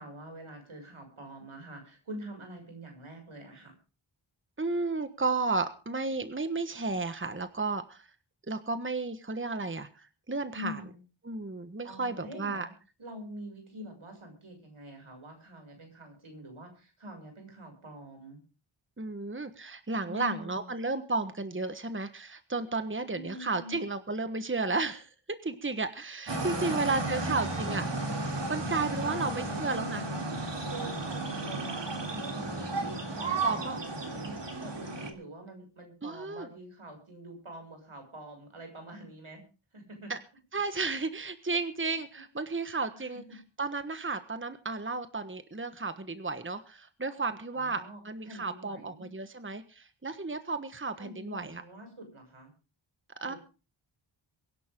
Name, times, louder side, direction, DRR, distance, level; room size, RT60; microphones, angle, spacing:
voice 1, 0.0-3.7 10.5-11.0 11.8-12.7 13.0-18.4 20.0-20.7 23.1-23.8 26.5-26.9 27.1-27.5 29.0-29.6 30.7-33.7 34.1-39.4 39.7-40.1 41.9-42.2 42.9-43.1 47.5-48.0 48.3-49.1 51.0-52.5 53.2-53.4, equal, 80° right, 4 dB, 6.6 m, -45 dB
voice 2, 4.6-8.1 8.5-10.8 11.2-12.7 19.0-25.1 25.4-27.8 28.2-30.1 33.4-33.8 36.0-36.5 40.1-40.2 40.5-51.6 53.2-53.3, right 3 dB, 25° right, 10 dB, 1.3 m, -33 dB
sound 1, 26.3-35.1, right 2 dB, 60° right, 3.3 m, -34 dB
23.5 x 11.5 x 3.7 m, 0.34 s
wide cardioid pair, 65°, 48 cm